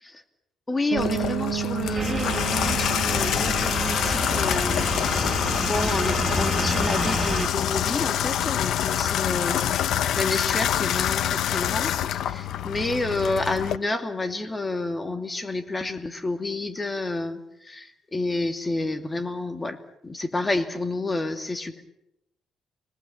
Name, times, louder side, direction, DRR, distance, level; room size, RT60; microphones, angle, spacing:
voice 1, 0.7-9.8 10.2-21.8, left 2 dB, 20° left, 6 dB, 2.5 m, -29 dB
Piano, 0.9-6.6, right 13 dB, 90° right, 1.2 m, -33 dB
Water tap faucet / Bathtub (filling or washing), 1.0-13.8, left 10 dB, 75° left, 0.9 m, -26 dB
sound 1, 1.9-7.5, right 2 dB, 20° right, 2.0 m, -29 dB
29.0 x 19.0 x 7.4 m, 0.84 s
cardioid pair, 90°, 0 cm